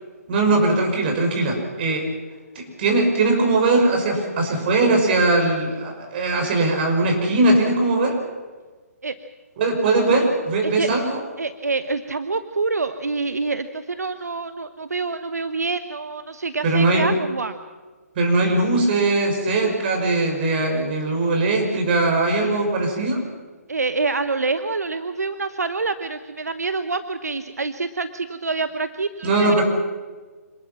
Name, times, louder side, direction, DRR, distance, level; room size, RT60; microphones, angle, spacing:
voice 1, 0.3-2.1 2.5-8.2 9.6-11.2 16.6-17.1 18.2-23.2 29.2-29.6, right 2 dB, 40° right, 2 dB, 6.2 m, -20 dB
voice 2, 11.4-17.6 23.7-29.6, right 3 dB, 80° right, 11 dB, 1.1 m, -26 dB
26.5 x 19.5 x 6.0 m, 1.4 s
figure-of-eight pair, 140°, 9 cm